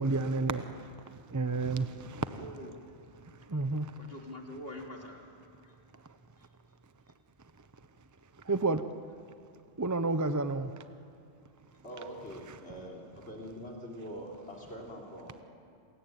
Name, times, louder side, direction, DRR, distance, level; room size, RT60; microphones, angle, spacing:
voice 1, 0.0-2.4 3.2-4.0 6.0-6.1 8.3-8.9 9.8-10.8 12.5-12.6, right 3 dB, 20° right, 10 dB, 0.8 m, -31 dB
voice 2, 2.4-2.8 4.0-5.3 5.6-5.8 6.4-6.5 11.7-11.8, left 1 dB, 65° left, 1 dB, 3.1 m, -45 dB
voice 3, 11.8-15.4, equal, 80° left, -1 dB, 3.8 m, -44 dB
28.0 x 21.0 x 9.3 m, 2.5 s
omnidirectional pair, 1.1 m